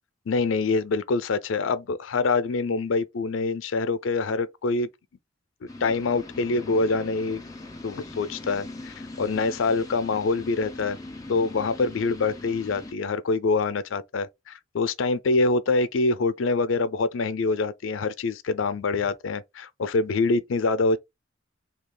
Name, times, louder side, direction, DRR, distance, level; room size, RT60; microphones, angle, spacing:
voice 1, 0.3-4.9 5.8-7.4 7.8-11.0 11.3-21.0, left 3 dB, 85° left, 0.4 m, -25 dB
sound 1, 5.7-12.9, left 2 dB, 20° left, 0.5 m, -41 dB
2.8 x 2.3 x 3.7 m
head